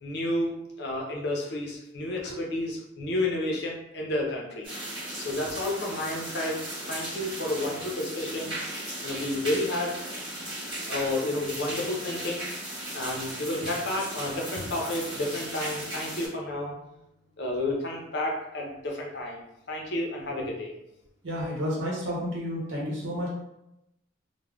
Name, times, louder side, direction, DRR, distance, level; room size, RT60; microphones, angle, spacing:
voice 1, 0.0-4.7 5.2-8.6 9.0-10.0 10.9-12.5 12.9-16.8 17.4-20.7, left 1 dB, 55° left, 0 dB, 0.6 m, -31 dB
sound 1, 4.6-16.3, right 1 dB, 25° right, 1.1 m, -37 dB
voice 2, 21.2-23.3, equal, 70° right, -5 dB, 0.8 m, -31 dB
2.3 x 2.1 x 3.3 m, 0.86 s
head